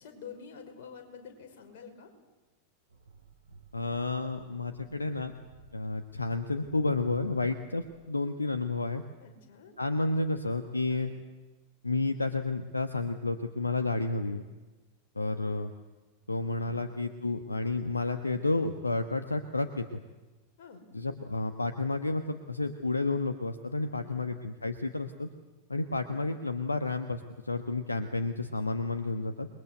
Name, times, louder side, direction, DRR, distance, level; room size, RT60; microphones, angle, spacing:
voice 1, 0.0-2.1 9.2-9.7 10.9-11.0 16.6-16.8 20.6-20.8 23.9-24.2 26.1-26.3, left 6 dB, 50° left, 4 dB, 5.4 m, -48 dB
sound 1, 2.9-8.0, right 4 dB, 75° right, 7.4 m, -56 dB
voice 2, 3.7-5.3 5.7-9.0 9.8-11.1 11.8-14.4 15.1-15.7 16.3-19.8 20.9-25.3 25.7-29.5, left 3 dB, 80° left, 9 dB, 1.3 m, -31 dB
28.0 x 22.0 x 8.0 m, 1.2 s
figure-of-eight pair, 90°, 0 cm